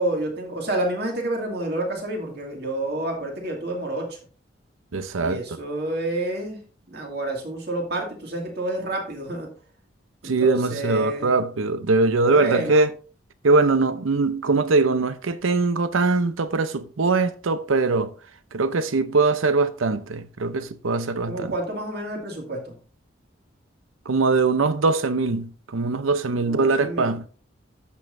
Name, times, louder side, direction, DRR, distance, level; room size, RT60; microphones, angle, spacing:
voice 1, 0.0-4.2 5.2-6.6 6.9-9.5 10.2-11.3 12.3-12.9 21.2-22.8 26.4-27.2, right 1 dB, 55° right, 2.3 m, -29 dB
voice 2, 4.9-5.4 10.2-12.9 13.4-18.1 18.5-21.5 24.1-27.3, right 3 dB, 90° right, 0.7 m, -22 dB
14.5 x 5.5 x 2.6 m
head